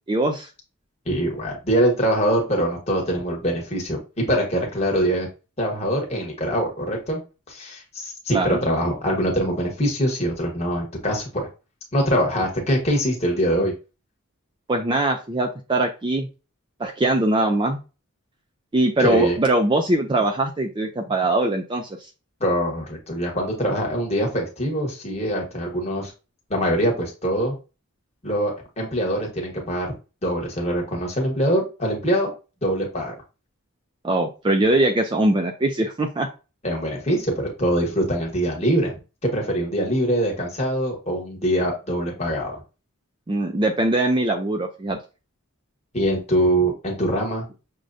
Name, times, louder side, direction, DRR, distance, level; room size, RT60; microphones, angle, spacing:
voice 1, 0.1-0.5 8.3-8.6 14.7-16.3 16.8-17.8 18.7-22.1 34.0-36.3 43.3-45.0, right 2 dB, 20° right, 4 dB, 0.3 m, -22 dB
voice 2, 1.1-4.0 4.3-5.3 5.6-7.2 7.5-11.5 11.9-13.7 19.0-19.4 22.4-26.1 26.5-27.6 28.2-29.9 30.2-32.3 32.6-33.1 36.6-38.9 39.3-42.6 45.9-47.5, equal, 30° left, 0 dB, 1.2 m, -23 dB
6.2 x 2.2 x 2.6 m, 0.31 s
head